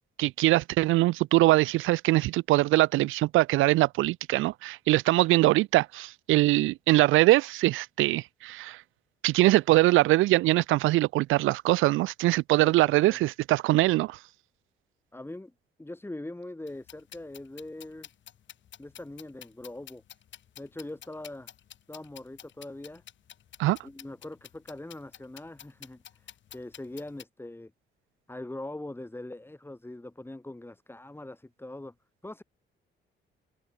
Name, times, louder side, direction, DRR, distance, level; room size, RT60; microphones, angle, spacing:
voice 1, 0.2-8.8 9.2-14.2 23.6-23.8, right 18 dB, 85° right, 0.5 m, -22 dB
voice 2, 15.1-15.5 15.8-18.1 18.8-20.0 20.6-21.5 21.9-23.0 23.8-27.7 28.3-31.9 32.2-32.4, left 1 dB, 10° left, 4.9 m, -42 dB
sound 1, 16.7-27.2, left 11 dB, 70° left, 5.4 m, -51 dB
cardioid pair, 90°, 20 cm